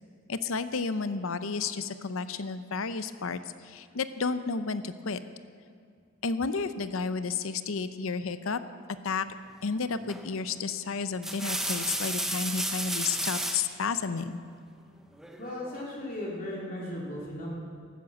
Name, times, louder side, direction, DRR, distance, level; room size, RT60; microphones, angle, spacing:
voice 1, 0.3-5.2 6.2-8.6 9.0-9.3 9.6-14.4, left 4 dB, 75° left, 12 dB, 0.7 m, -32 dB
sound 1, 10.1-10.4 11.0-13.7 15.2-15.8, right 1 dB, ahead, 0.9 m, -32 dB
voice 2, 15.4-17.5, left 1 dB, 40° left, -4 dB, 2.8 m, -36 dB
14.5 x 14.0 x 6.3 m, 2.2 s
head